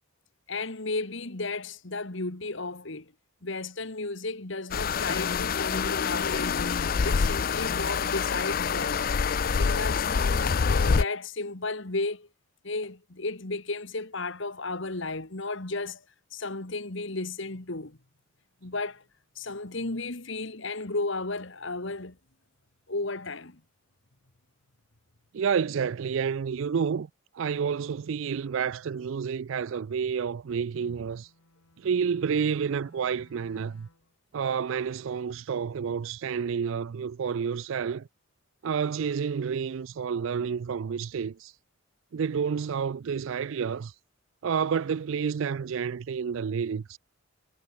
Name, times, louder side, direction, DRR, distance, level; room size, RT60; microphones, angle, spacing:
voice 1, 0.5-3.1 3.4-9.0 9.6-12.3 12.6-16.0 16.3-18.0 18.6-19.0 19.4-22.2 22.9-23.6, left 3 dB, 60° left, 1.7 m, -34 dB
sound 1, 4.7-11.0, left 5 dB, 40° left, 0.4 m, -26 dB
voice 2, 25.3-27.1 27.3-31.3 31.8-33.9 34.3-38.1 38.6-41.5 42.1-43.9 44.4-47.0, right 6 dB, 65° right, 0.4 m, -29 dB
Bowed string instrument, 30.8-34.2, left 1 dB, 80° left, 4.0 m, -60 dB
head